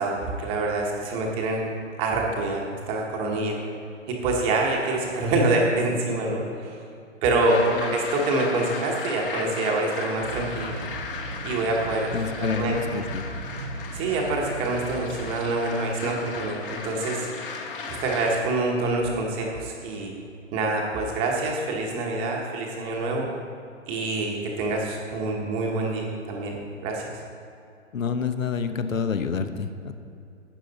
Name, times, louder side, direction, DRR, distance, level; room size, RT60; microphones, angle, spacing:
voice 1, 0.0-1.6 2.0-3.6 4.1-6.8 7.2-10.7 11.4-12.1 12.4-12.8 13.9-17.3 17.9-20.1 20.5-23.3 23.9-26.5 26.8-27.0, right 2 dB, 15° right, -1 dB, 0.9 m, -26 dB
sound 1, 7.4-18.4, left 5 dB, 45° left, 1.3 m, -36 dB
sound 2, 10.2-15.4, right 3 dB, 30° right, 0.4 m, -37 dB
voice 2, 12.1-13.3 27.9-29.9, left 6 dB, 90° left, 9 dB, 1.0 m, -28 dB
12.5 x 8.8 x 4.0 m, 2.5 s
hypercardioid pair, 155°, 39 cm